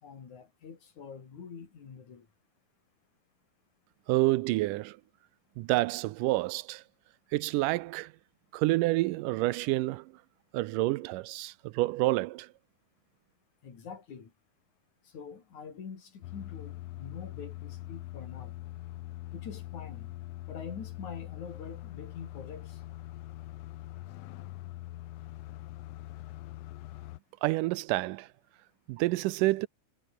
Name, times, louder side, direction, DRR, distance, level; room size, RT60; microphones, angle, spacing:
voice 1, 0.0-2.3 13.6-14.3 15.0-18.5 19.3-20.1 20.5-22.8, left 6 dB, 65° left, 4.8 m, -45 dB
voice 2, 4.1-5.0 5.6-6.8 7.3-8.1 8.5-10.1 10.5-12.5 27.4-28.3 28.9-29.7, right 19 dB, 85° right, 2.2 m, -28 dB
sound 1, 16.2-27.2, left 16 dB, 85° left, 1.4 m, -43 dB
omnidirectional pair, 3.7 m